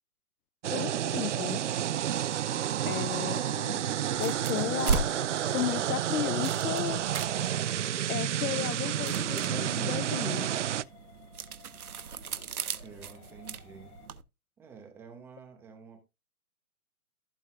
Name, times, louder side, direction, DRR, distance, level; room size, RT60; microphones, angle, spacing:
sound 1, 0.6-10.8, right 10 dB, 55° right, 0.5 m, -30 dB
voice 1, 0.7-1.6 2.9-7.0 8.1-10.5, left 12 dB, 80° left, 0.5 m, -34 dB
sound 2, 4.1-14.2, right 5 dB, 80° right, 1.2 m, -38 dB
Musical instrument, 7.7-14.1, left 9 dB, 20° left, 1.7 m, -58 dB
voice 2, 12.8-14.0 14.6-16.0, right 6 dB, 5° right, 0.8 m, -50 dB
15.5 x 5.6 x 2.4 m
hypercardioid pair, 160°, 43 cm